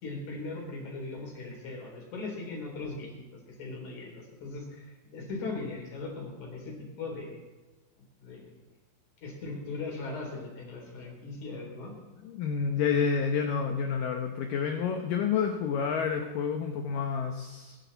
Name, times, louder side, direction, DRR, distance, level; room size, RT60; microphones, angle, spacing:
voice 1, 0.0-3.2 3.6-7.4 8.2-8.4 9.2-11.9, left 3 dB, 45° left, -1 dB, 4.7 m, -39 dB
voice 2, 12.2-17.8, left 6 dB, 85° left, 4 dB, 1.9 m, -29 dB
22.5 x 10.5 x 4.1 m, 1.2 s
omnidirectional pair, 5.2 m